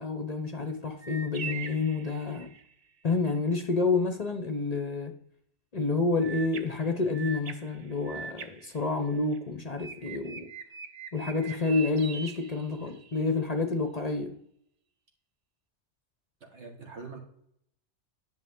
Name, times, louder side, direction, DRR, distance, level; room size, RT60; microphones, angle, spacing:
voice 1, 0.0-2.5 3.0-5.1 5.7-10.5 11.1-14.3, left 3 dB, 40° left, 0.7 m, -29 dB
sound 1, 1.0-2.7 6.2-9.4 9.8-13.2, right 6 dB, 40° right, 0.6 m, -43 dB
voice 2, 16.4-17.2, right 4 dB, 75° right, 1.9 m, -45 dB
10.5 x 5.8 x 3.7 m
omnidirectional pair, 1.2 m